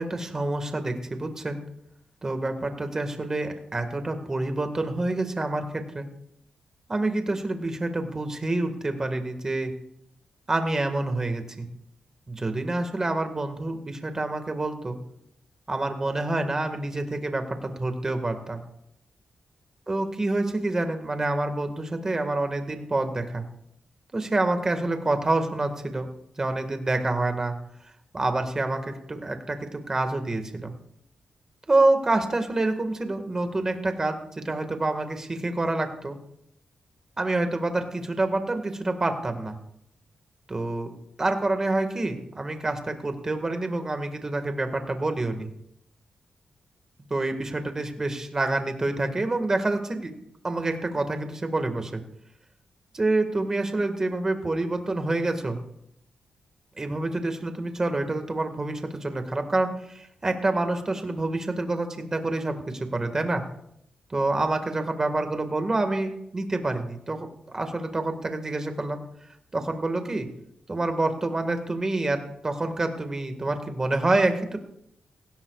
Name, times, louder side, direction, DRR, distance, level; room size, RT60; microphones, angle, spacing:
voice 1, 0.0-1.6 2.2-6.1 6.9-9.7 10.5-11.7 12.3-15.0 15.7-18.6 19.9-23.4 24.1-26.1 26.4-27.6 28.1-30.7 31.7-36.2 37.2-39.5 40.5-40.9 41.2-45.5 47.1-50.1 50.4-52.0 53.0-55.6 56.8-63.4 64.1-69.0 69.5-70.3 70.7-74.6, right 2 dB, 25° right, 6 dB, 1.7 m, -27 dB
17.5 x 17.0 x 2.4 m, 0.74 s
wide cardioid pair, 120°, 2 cm